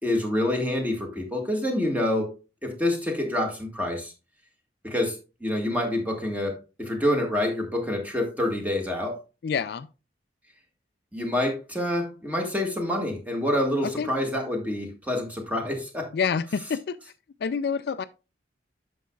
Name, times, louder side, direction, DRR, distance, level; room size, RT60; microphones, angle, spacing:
voice 1, 0.0-2.3 2.6-4.1 4.8-9.2 11.1-16.1, left 1 dB, 10° right, 1.7 m, -27 dB
voice 2, 9.4-9.9 13.8-14.1 16.1-17.0 17.4-18.0, left 6 dB, 60° left, 0.3 m, -27 dB
9.3 x 6.2 x 2.3 m
head